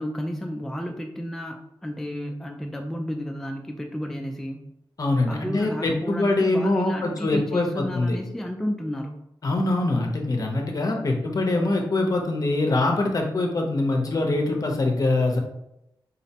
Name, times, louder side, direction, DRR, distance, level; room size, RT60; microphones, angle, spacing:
voice 1, 0.0-4.7 5.3-9.2, equal, 5° left, 2 dB, 0.3 m, -32 dB
voice 2, 5.0-8.2 9.4-15.4, left 2 dB, 45° left, 2 dB, 0.6 m, -23 dB
3.9 x 2.1 x 2.8 m, 0.83 s
wide cardioid pair, 80°, 8 cm